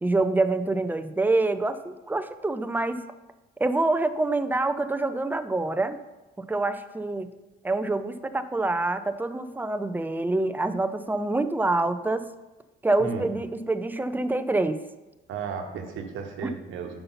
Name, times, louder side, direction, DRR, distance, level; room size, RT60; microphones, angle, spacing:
voice 1, 0.0-3.0 3.6-6.0 6.5-7.3 7.6-12.3 12.8-14.8 16.4-16.5, right 2 dB, 10° right, 11 dB, 0.4 m, -26 dB
voice 2, 15.3-17.0, right 6 dB, 80° right, 4 dB, 1.1 m, -34 dB
5.6 x 5.5 x 5.6 m, 1.1 s
cardioid pair, 90°, 20 cm